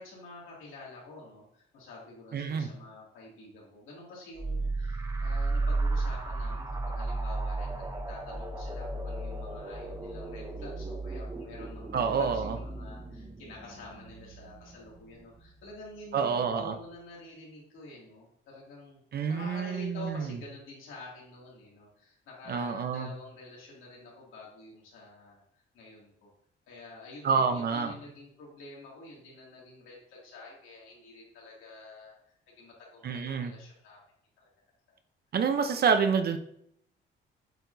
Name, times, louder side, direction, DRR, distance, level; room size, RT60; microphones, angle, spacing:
voice 1, 0.0-19.0 19.3-26.3 26.7-32.2 32.6-34.0 34.4-34.5, left 2 dB, 85° left, -4 dB, 2.6 m, -48 dB
voice 2, 2.3-2.7 11.9-12.6 16.1-16.7 19.1-20.4 22.5-23.1 27.2-27.9 33.0-33.5 35.3-36.4, right 6 dB, 50° right, 7 dB, 0.8 m, -28 dB
sound 1, 4.4-15.7, right 2 dB, 20° right, 0.8 m, -34 dB
7.8 x 4.5 x 2.7 m, 0.71 s
cardioid pair, 90°, 20 cm